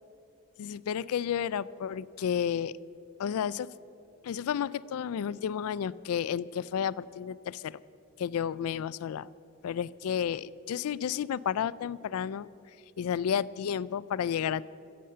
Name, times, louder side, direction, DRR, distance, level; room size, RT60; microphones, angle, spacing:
voice 1, 0.6-2.7 3.2-3.7 4.2-7.8 8.2-9.3 9.6-12.5 13.0-14.7, left 8 dB, 90° left, 18 dB, 0.3 m, -31 dB
15.5 x 7.7 x 6.7 m, 2.5 s
head